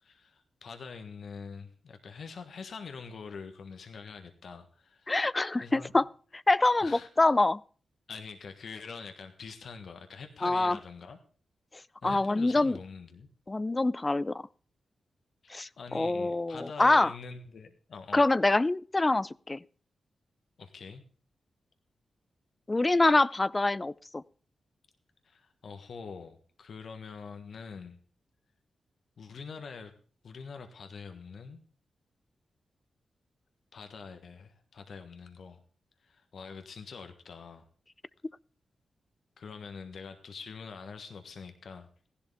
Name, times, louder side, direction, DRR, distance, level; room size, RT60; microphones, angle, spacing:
voice 1, 0.0-5.1 5.6-5.9 6.7-7.1 8.1-11.2 12.0-13.3 15.4-18.2 20.6-21.0 25.2-28.0 29.2-29.9 30.2-31.6 33.7-35.6 36.0-37.6 39.4-41.9, left 5 dB, 70° left, 1.4 m, -45 dB
voice 2, 5.1-6.1 6.3-7.6 10.4-10.8 12.0-12.8 13.5-14.4 15.5-17.1 18.1-19.6 22.7-24.2, left 2 dB, 30° left, 0.5 m, -25 dB
15.5 x 11.5 x 3.5 m
supercardioid pair, 40°, 0 cm